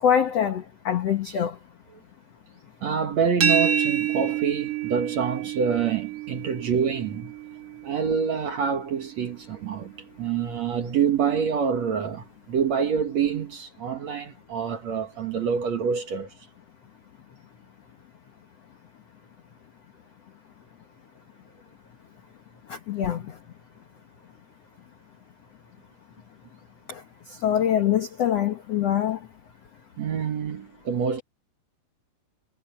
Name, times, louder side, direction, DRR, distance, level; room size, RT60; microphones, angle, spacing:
voice 1, 0.0-1.6 22.7-23.2 26.9-27.0 27.3-29.2, left 9 dB, 70° left, 1.5 m, -24 dB
voice 2, 2.8-7.3 7.8-9.9 10.2-16.3 30.0-31.2, right 7 dB, 55° right, 2.2 m, -26 dB
sound 1, 3.4-9.2, right 8 dB, 35° right, 2.3 m, -28 dB
omnidirectional pair, 4.7 m